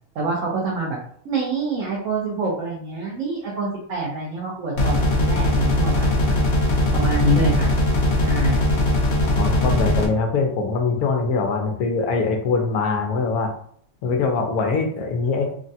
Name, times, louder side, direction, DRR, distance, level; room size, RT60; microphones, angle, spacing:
voice 1, 0.1-1.0 1.2-6.1 6.9-7.7 8.2-8.7, right 2 dB, 65° right, -3 dB, 1.0 m, -25 dB
sound 1, 4.8-10.1, left 1 dB, 55° left, 1.0 m, -20 dB
voice 2, 9.3-13.5 14.0-15.5, left 4 dB, 85° left, 3 dB, 1.2 m, -23 dB
3.5 x 2.1 x 2.6 m, 0.62 s
omnidirectional pair, 1.5 m